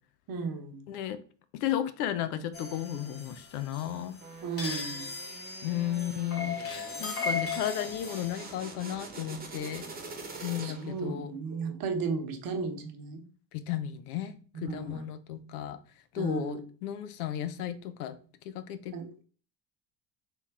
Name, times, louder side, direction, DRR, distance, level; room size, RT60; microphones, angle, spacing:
voice 1, 0.3-0.9 4.4-5.1 10.4-13.2 14.6-15.0 16.2-16.6 18.9-19.1, right 4 dB, 45° right, 5 dB, 1.0 m, -35 dB
voice 2, 0.9-1.2 1.5-4.2 5.6-9.9 10.4-11.3 13.5-15.8 16.1-18.2 18.4-19.0, left 11 dB, 70° left, 11 dB, 0.6 m, -34 dB
sound 1, 2.5-8.6, left 4 dB, 30° left, 1.0 m, -37 dB
sound 2, 4.2-11.1, right 4 dB, 20° right, 1.1 m, -45 dB
3.5 x 3.0 x 4.6 m, 0.40 s
hypercardioid pair, 60°, 47 cm